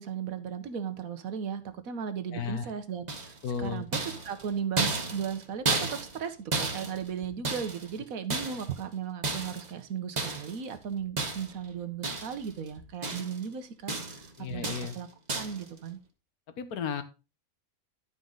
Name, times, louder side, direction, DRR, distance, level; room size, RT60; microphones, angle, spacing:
voice 1, 0.0-16.0, right 7 dB, 70° right, 9 dB, 1.4 m, -36 dB
voice 2, 2.3-2.7 3.4-3.8 14.4-15.0 16.6-17.0, left 7 dB, 90° left, 10 dB, 1.5 m, -34 dB
sound 1, 3.1-3.5 3.9-6.3 6.5-7.9 8.3-8.8 9.2-9.7 10.2-10.6 11.2-11.6 12.0-12.5 12.8-13.5 13.9-14.3 14.6-15.0 15.3-15.6, right 3 dB, 30° right, 1.2 m, -33 dB
11.0 x 5.3 x 3.8 m, 0.30 s
omnidirectional pair, 1.5 m